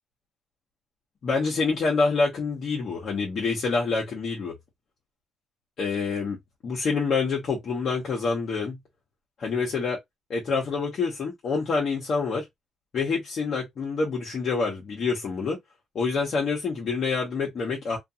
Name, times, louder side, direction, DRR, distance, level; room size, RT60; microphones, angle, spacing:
voice 1, 1.2-4.5 5.8-6.4 6.6-8.8 9.4-10.0 10.3-12.5 12.9-15.6 15.9-18.0, left 4 dB, 60° left, 1.0 m, -27 dB
2.4 x 2.4 x 2.7 m
cardioid pair, 90°, 0 cm